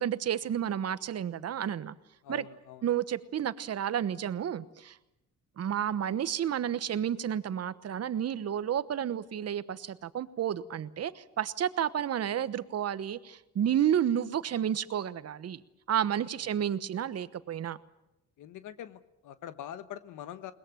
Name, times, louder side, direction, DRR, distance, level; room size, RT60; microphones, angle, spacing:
voice 1, 0.0-1.9 2.3-2.4 2.8-5.0 5.6-15.6 15.9-17.8, right 9 dB, 55° right, 15 dB, 1.2 m, -31 dB
voice 2, 2.2-2.8 16.4-16.7 18.4-20.5, left 11 dB, 85° left, 12 dB, 1.2 m, -44 dB
21.5 x 20.5 x 9.0 m, 0.90 s
cardioid pair, 90°, 30 cm